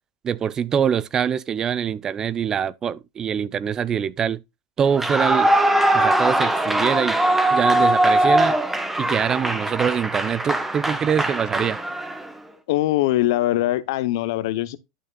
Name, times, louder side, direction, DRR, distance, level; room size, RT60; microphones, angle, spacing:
voice 1, 0.2-4.4 4.8-5.5 5.9-7.2 7.5-8.6 9.0-11.8, right 8 dB, 25° right, 0.4 m, -24 dB
Clapping / Cheering / Applause, 4.9-12.3, right 1 dB, 10° right, 1.0 m, -21 dB
voice 2, 12.7-14.8, left 15 dB, 70° left, 0.7 m, -22 dB
11.0 x 6.3 x 2.2 m
supercardioid pair, 120°, 2 cm